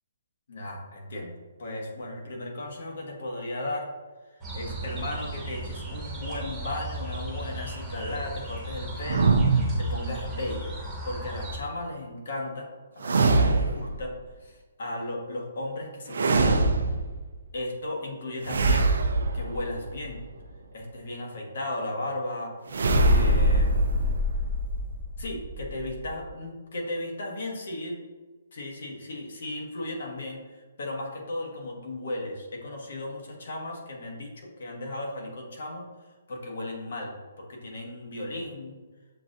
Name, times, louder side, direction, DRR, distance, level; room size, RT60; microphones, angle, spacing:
voice 1, 0.5-3.9 4.3-10.7 11.0-12.6 12.9-14.1 14.4-16.7 17.5-18.9 19.3-20.2 20.7-22.5 22.9-24.2 25.2-28.0 28.5-35.8 36.3-38.8, left 1 dB, 60° left, -1 dB, 1.3 m, -35 dB
sound 1, 4.4-11.6, right 1 dB, 5° right, 0.9 m, -36 dB
sound 2, 9.1-10.6 13.0-14.1 16.1-17.3 18.4-20.2 22.7-26.3, right 2 dB, 75° right, 0.4 m, -24 dB
7.1 x 2.5 x 2.6 m, 1.3 s
hypercardioid pair, 165°, 0 cm